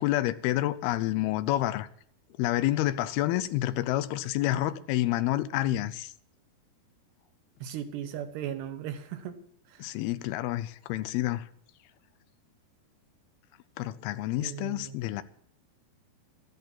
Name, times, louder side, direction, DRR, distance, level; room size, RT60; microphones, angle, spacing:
voice 1, 0.0-1.9 2.4-6.1 9.8-11.5 13.8-15.2, left 15 dB, 80° left, 2.5 m, -28 dB
voice 2, 7.6-9.4 9.7-9.9 14.4-15.0, right 10 dB, 85° right, 3.3 m, -37 dB
13.5 x 11.0 x 6.1 m
omnidirectional pair, 4.7 m